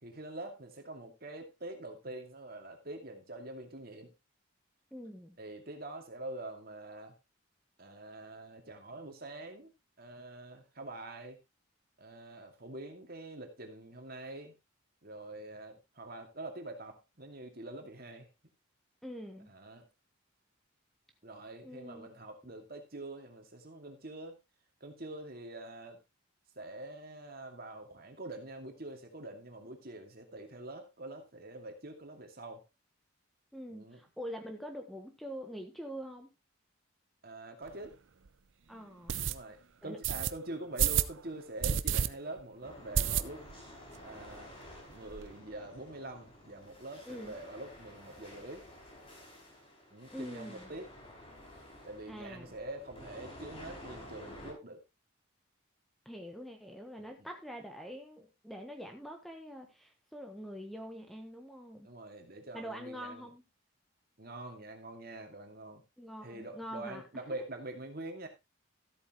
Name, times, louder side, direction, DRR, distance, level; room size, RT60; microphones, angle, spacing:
voice 1, 0.0-4.1 5.4-7.1 7.8-9.7 10.0-11.4 12.0-14.5 15.0-18.3 19.5-19.9 21.2-24.4 24.8-26.0 26.6-32.6 33.7-34.0 37.2-38.0 39.2-43.5 44.0-44.5 44.9-48.6 49.9-50.9 51.8-54.8 57.0-57.3 61.8-63.3 64.2-65.8 66.2-68.3, right 2 dB, 45° right, 4 dB, 2.4 m, -45 dB
voice 2, 4.9-5.4 19.0-19.5 21.6-22.1 33.5-36.3 38.7-39.2 39.8-40.0 47.1-47.3 50.1-50.7 52.1-52.5 56.0-61.9 62.5-63.4 66.0-67.2, equal, ahead, 4 dB, 1.3 m, -45 dB
sound 1, 37.7-37.8 38.3-38.4 39.1-39.4 40.0-40.3 40.8-41.1 41.6-42.1 42.4-42.5 42.9-43.6 43.9-44.0 44.3-44.4 44.6-45.3, right 8 dB, 65° right, 0.6 m, -30 dB
sound 2, 42.6-54.5, left 1 dB, 30° left, 4.8 m, -51 dB
14.0 x 8.5 x 3.1 m, 0.23 s
head